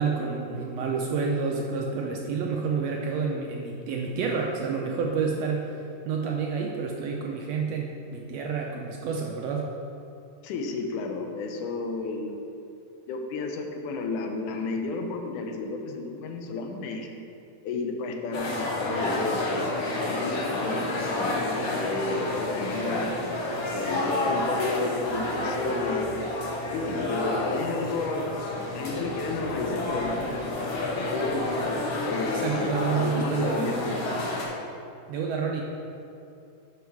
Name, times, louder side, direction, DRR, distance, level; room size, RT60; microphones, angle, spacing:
voice 1, 0.0-5.7 6.0-9.7 32.3-33.7 35.1-35.6, right 5 dB, 75° right, 0 dB, 1.6 m, -29 dB
voice 2, 10.4-12.4 13.1-17.1 17.6-19.7 19.9-23.3 23.7-26.1 26.7-28.2 28.7-30.8 31.1-34.1, left 3 dB, 80° left, 4 dB, 2.3 m, -32 dB
sound 1, 18.3-34.4, left 2 dB, 45° left, 2.0 m, -30 dB
11.5 x 5.8 x 4.7 m, 2.6 s
omnidirectional pair, 3.5 m